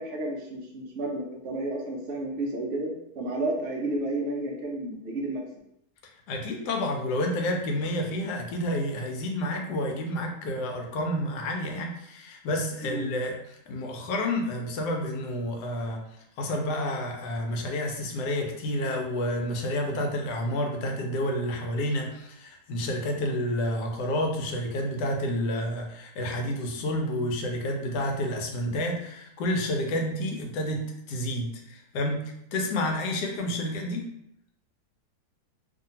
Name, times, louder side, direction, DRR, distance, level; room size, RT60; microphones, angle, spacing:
voice 1, 0.0-5.4 12.8-13.1, right 2 dB, 75° right, 0 dB, 0.6 m, -31 dB
voice 2, 6.3-16.0 16.4-30.8 31.1-34.0, left 1 dB, 85° left, 2 dB, 1.2 m, -29 dB
2.7 x 2.5 x 2.7 m, 0.78 s
omnidirectional pair, 1.7 m